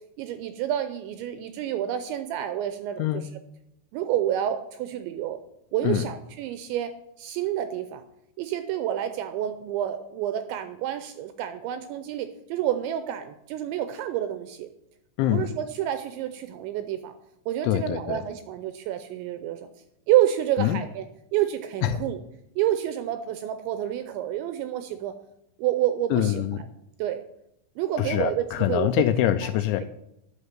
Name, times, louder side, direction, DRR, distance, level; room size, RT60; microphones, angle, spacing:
voice 1, 0.2-3.3 3.9-5.4 5.7-6.9 7.2-8.0 8.4-14.7 15.3-17.1 17.5-19.7 20.1-21.1 21.3-22.2 22.6-25.1 25.6-26.4 27.0-27.2 27.8-28.9 29.8-29.9, right 11 dB, 80° right, 9 dB, 2.7 m, -28 dB
voice 2, 15.2-15.5 17.6-18.2 20.6-20.8 21.8-22.0 26.1-26.6 28.0-29.9, left 12 dB, 80° left, 10 dB, 2.8 m, -24 dB
10.0 x 6.6 x 9.0 m, 0.81 s
omnidirectional pair, 5.8 m